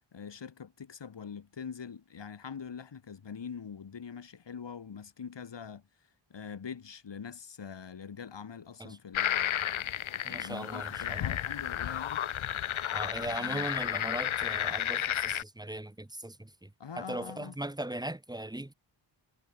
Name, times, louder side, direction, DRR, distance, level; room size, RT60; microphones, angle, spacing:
voice 1, 0.1-5.8 6.3-12.2 13.3-13.7 16.8-17.5, left 6 dB, 60° left, 4.9 m, -44 dB
sound 1, 9.1-15.4, left 10 dB, 80° left, 1.0 m, -32 dB
voice 2, 10.2-11.4 12.9-18.7, right 1 dB, 10° right, 1.6 m, -39 dB
wide cardioid pair, 175°, 47 cm